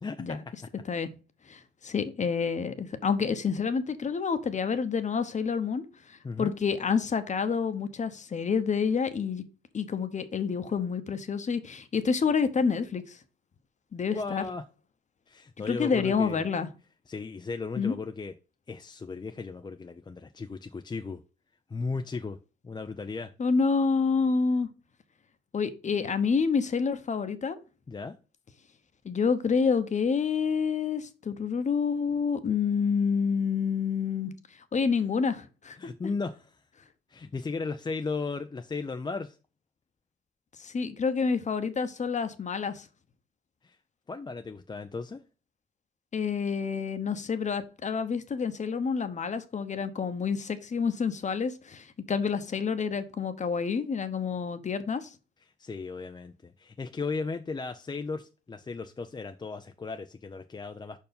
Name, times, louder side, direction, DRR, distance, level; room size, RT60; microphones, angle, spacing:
voice 1, 0.0-0.4 6.2-6.5 14.1-14.6 15.3-16.4 17.1-18.3 18.7-21.2 21.7-22.4 22.6-23.3 27.9-28.2 35.8-36.6 37.1-39.4 43.6-43.8 44.1-45.2 55.6-61.0, left 4 dB, 20° left, 0.5 m, -36 dB
voice 2, 1.5-9.4 9.7-13.2 13.9-14.4 15.7-16.7 17.8-17.9 23.4-24.7 25.5-27.6 29.0-34.3 34.7-35.8 40.6-42.9 46.1-55.1, left 5 dB, 35° left, 1.0 m, -28 dB
5.3 x 4.7 x 5.2 m
cardioid pair, 90°, 20 cm